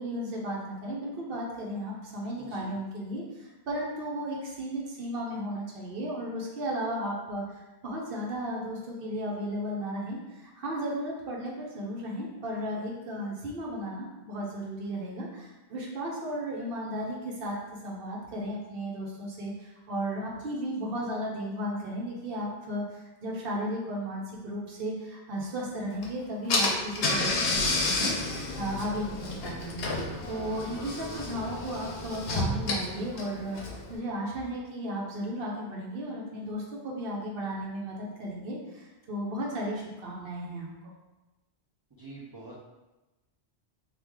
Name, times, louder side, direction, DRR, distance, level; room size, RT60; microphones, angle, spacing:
voice 1, 0.0-17.6 17.8-29.8 30.2-33.6 33.9-40.9, equal, 65° right, -3 dB, 0.9 m, -35 dB
Car / Engine, 26.0-26.1 26.5-33.9, left 2 dB, 70° left, 0.9 m, -30 dB
voice 2, 42.0-42.6, right 3 dB, 40° right, -6 dB, 0.3 m, -44 dB
3.1 x 2.4 x 3.5 m, 1.1 s
omnidirectional pair, 1.1 m